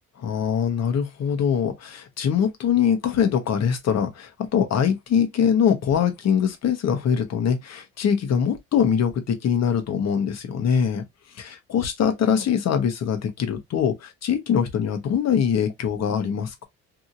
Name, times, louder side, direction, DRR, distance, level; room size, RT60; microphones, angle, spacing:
voice 1, 0.2-11.0 11.3-16.6, left 7 dB, 60° left, 0.9 m, -23 dB
2.8 x 2.7 x 2.5 m
cardioid pair, 90°, 30 cm